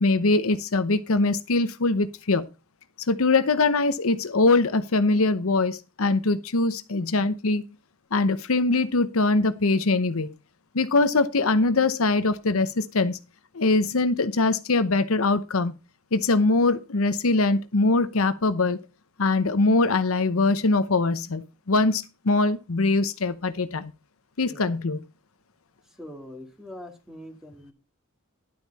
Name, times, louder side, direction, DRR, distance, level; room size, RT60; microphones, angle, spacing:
voice 1, 0.0-2.5 3.1-7.6 8.1-10.3 10.7-13.2 13.5-15.7 16.1-18.8 19.2-23.9 24.4-25.0, left 3 dB, 75° left, 0.9 m, -22 dB
voice 2, 25.8-27.7, left 1 dB, ahead, 2.2 m, -43 dB
11.5 x 8.2 x 4.1 m
head